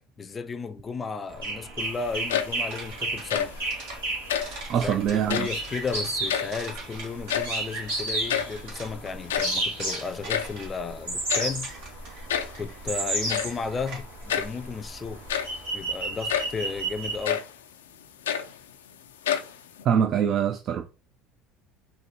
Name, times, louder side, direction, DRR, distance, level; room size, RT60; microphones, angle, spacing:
voice 1, 0.2-3.6 4.7-11.7 12.6-15.2 15.7-17.4, left 5 dB, 30° left, 0.5 m, -34 dB
sound 1, 1.3-17.3, right 2 dB, 90° right, 1.5 m, -33 dB
sound 2, 2.1-2.8 3.1-3.7 4.2-4.6 5.2-5.7 6.0-6.9 7.1-7.7 8.0-8.1 8.3-8.6 9.1-10.6 11.3-11.6 12.3-12.7 13.3-13.6 14.3-14.6 15.1-15.7 16.3-16.6 17.2-17.6 18.0-18.9 19.2-19.8, left 9 dB, 90° left, 0.3 m, -29 dB
sound 3, 2.7-14.3, right 3 dB, 70° right, 1.3 m, -44 dB
voice 2, 4.7-5.5 19.8-20.8, right 8 dB, 50° right, 0.4 m, -24 dB
4.1 x 2.6 x 2.8 m
hypercardioid pair, 75°, 0 cm